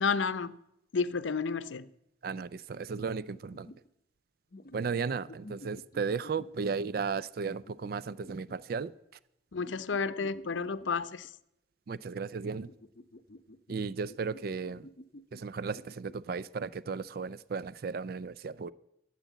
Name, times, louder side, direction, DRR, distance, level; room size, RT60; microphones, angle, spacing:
voice 1, 0.0-0.6 0.9-1.9 9.5-11.3, left 5 dB, 90° left, 0.6 m, -31 dB
voice 2, 2.2-3.7 4.7-8.9 11.9-12.7 13.7-14.9 15.3-18.7, right 5 dB, 55° right, 0.4 m, -35 dB
sound 1, 2.4-2.5 2.9-3.9 4.5-6.6 7.5-8.6 9.5-11.3 12.4-16.4, left 1 dB, 50° left, 0.7 m, -53 dB
13.0 x 8.1 x 8.2 m
head